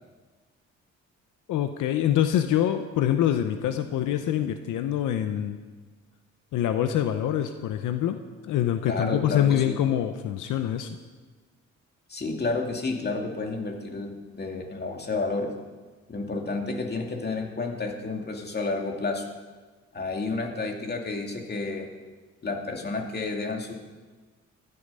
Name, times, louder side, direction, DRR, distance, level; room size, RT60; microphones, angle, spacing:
voice 1, 1.5-5.6 6.5-8.2 8.4-10.9, left 11 dB, 85° left, 8 dB, 0.9 m, -25 dB
voice 2, 8.8-9.8 12.1-15.5 16.1-19.3 19.9-21.9 22.4-23.7, left 3 dB, 35° left, 2 dB, 2.5 m, -30 dB
15.0 x 12.5 x 5.5 m, 1.3 s
cardioid pair, 90°, 30 cm